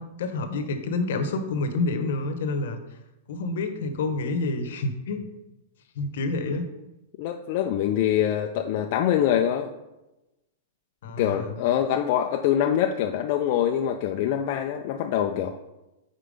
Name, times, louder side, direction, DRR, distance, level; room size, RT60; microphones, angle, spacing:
voice 1, 0.0-2.8 3.3-5.3 5.9-6.7 11.0-11.5, left 3 dB, 65° left, 7 dB, 0.9 m, -28 dB
voice 2, 7.2-9.7 11.2-15.6, left 10 dB, 40° left, 3 dB, 0.3 m, -24 dB
5.1 x 4.5 x 5.1 m, 1.0 s
supercardioid pair, 165°, 0 cm